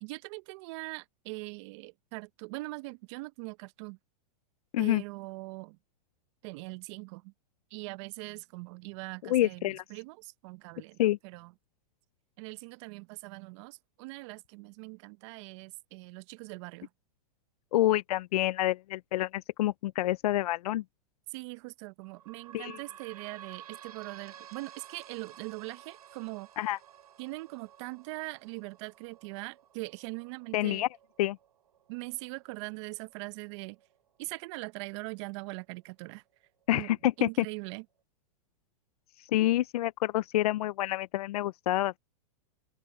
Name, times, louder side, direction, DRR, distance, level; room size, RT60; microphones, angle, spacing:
voice 1, 0.0-4.0 4.8-5.8 6.4-7.3 7.7-11.5 12.4-16.9 21.3-26.5 27.2-30.9 31.9-33.8 34.2-36.2 36.7-36.9 37.2-37.8, right 26 dB, 50° right, 0.8 m, -41 dB
voice 2, 9.2-9.8 11.0-11.2 17.7-20.8 22.5-22.8 26.6-26.8 30.5-30.9 31.2-31.4 36.7-37.3 39.2-42.0, left 14 dB, 75° left, 0.5 m, -28 dB
sound 1, 22.0-35.2 35.8-35.9 36.1-36.2 37.0-37.1, right 10 dB, 80° right, 7.3 m, -53 dB
open air
hypercardioid pair, 130°, 20 cm